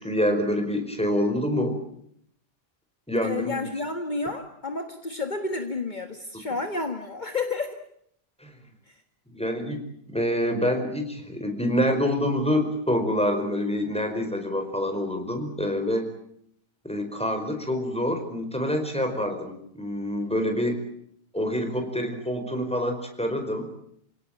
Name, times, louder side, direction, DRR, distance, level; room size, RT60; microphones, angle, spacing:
voice 1, 0.0-1.8 3.1-3.7 8.4-8.5 9.3-16.0 16.8-20.8 21.3-23.7, equal, 5° left, 5 dB, 4.9 m, -26 dB
voice 2, 3.2-7.8 8.9-9.0, left 3 dB, 50° left, 6 dB, 1.8 m, -31 dB
29.5 x 17.5 x 9.0 m, 0.70 s
omnidirectional pair, 1.0 m